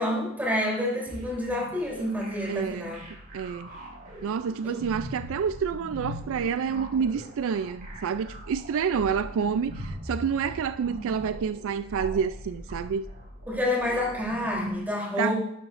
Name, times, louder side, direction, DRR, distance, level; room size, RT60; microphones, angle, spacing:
voice 1, 0.0-3.0 4.6-4.8 13.5-15.3, left 1 dB, 10° right, 3.3 m, -28 dB
sound 1, 1.1-14.7, equal, 45° right, 4.5 m, -41 dB
voice 2, 2.5-2.9 3.3-3.8 4.2-13.1 15.2-15.3, right 6 dB, 65° right, 0.3 m, -28 dB
11.0 x 11.0 x 2.5 m
head